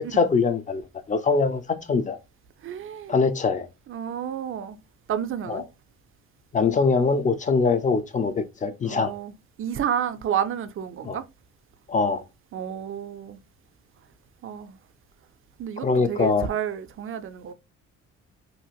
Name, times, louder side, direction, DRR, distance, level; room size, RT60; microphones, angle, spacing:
voice 1, 0.0-1.6 1.9-2.2 3.1-3.7 5.5-5.6 6.5-9.1 11.0-11.2 11.9-12.2 15.8-16.5, left 4 dB, 25° left, 0.5 m, -23 dB
voice 2, 2.6-3.1 3.9-4.8 5.1-5.6 8.8-9.3 9.6-11.2 12.5-13.4 14.4-14.8 15.6-17.5, right 9 dB, 45° right, 0.4 m, -30 dB
2.7 x 2.4 x 2.9 m
cardioid pair, 90°, 30 cm